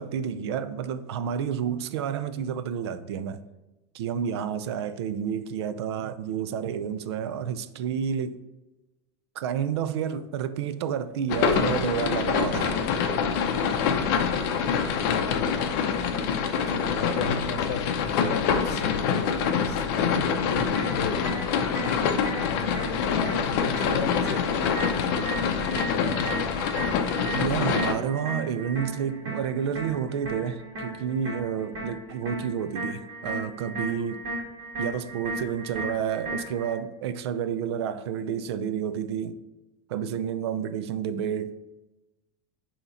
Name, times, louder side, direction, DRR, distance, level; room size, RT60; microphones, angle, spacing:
voice 1, 0.0-3.4 3.9-8.4 9.4-12.8 13.3-13.4 16.7-17.0 27.3-34.2 34.8-39.4 39.9-41.7, right 8 dB, 80° right, 0.5 m, -30 dB
sound 1, 11.3-27.9, left 6 dB, 50° left, 0.6 m, -26 dB
voice 2, 14.4-15.9 16.2-16.3 16.6-17.9 18.2-27.0, left 5 dB, 85° left, 0.8 m, -36 dB
sound 2, 20.8-36.8, right 2 dB, 30° right, 1.9 m, -36 dB
8.0 x 2.9 x 4.1 m
supercardioid pair, 170°, 14 cm